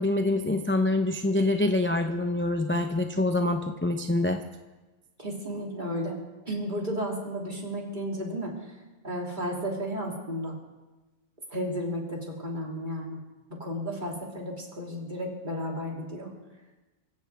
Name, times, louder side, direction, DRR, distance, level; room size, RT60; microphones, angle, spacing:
voice 1, 0.0-4.4, left 2 dB, 15° left, 5 dB, 0.5 m, -25 dB
voice 2, 5.2-6.2 6.4-8.8 9.0-10.6 11.5-13.2 13.6-16.3, equal, 30° right, -2 dB, 3.2 m, -33 dB
24.5 x 16.0 x 3.5 m, 1.2 s
omnidirectional pair, 1.5 m